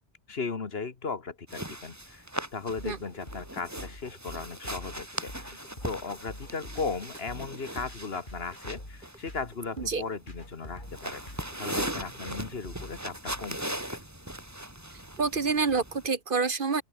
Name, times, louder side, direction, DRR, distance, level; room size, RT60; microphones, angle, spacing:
voice 1, 0.3-2.3 2.5-11.2 11.6-14.0, left 4 dB, 60° left, 1.8 m, -37 dB
sound 1, 1.5-16.1, right 1 dB, 15° right, 2.9 m, -39 dB
sound 2, 2.8-13.5, left 1 dB, 45° left, 6.4 m, -45 dB
voice 2, 15.2-16.8, right 4 dB, 50° right, 1.3 m, -27 dB
open air
omnidirectional pair, 1.2 m